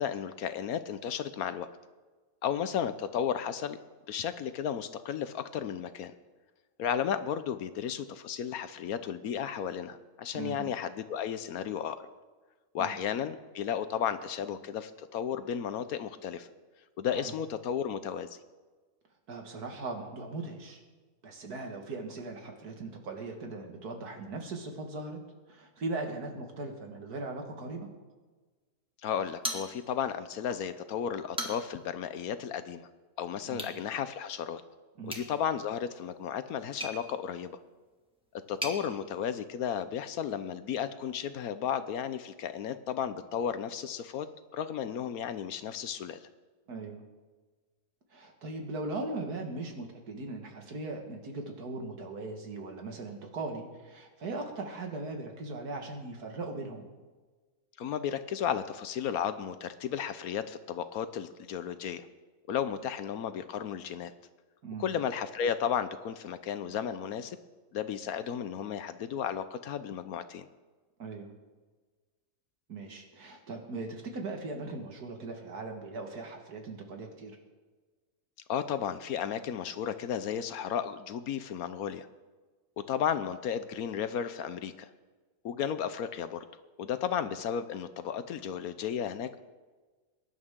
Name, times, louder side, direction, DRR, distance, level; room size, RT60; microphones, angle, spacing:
voice 1, 0.0-1.7 2.4-3.8 4.1-6.1 6.8-12.1 12.7-16.5 17.0-18.4 29.0-32.9 33.2-34.6 35.0-37.6 38.5-44.3 44.5-46.3 57.8-62.1 62.5-64.1 64.8-67.4 67.7-70.5 78.5-82.1 82.9-84.9 85.4-86.5 86.8-89.4, left 8 dB, 70° left, 12 dB, 1.1 m, -34 dB
voice 2, 10.3-10.7 12.8-12.9 17.1-17.3 19.3-20.8 21.2-25.2 25.5-27.9 33.5-33.7 35.0-35.1 46.7-47.0 48.1-56.9 64.6-64.9 71.0-71.3 72.7-77.4, right 3 dB, 75° right, 3 dB, 2.2 m, -39 dB
sound 1, 29.4-30.2 30.5-30.6 31.1-31.9 33.5-33.8 35.0-38.8, equal, 5° right, 1.7 m, -40 dB
22.0 x 11.0 x 3.7 m, 1.3 s
omnidirectional pair, 1.7 m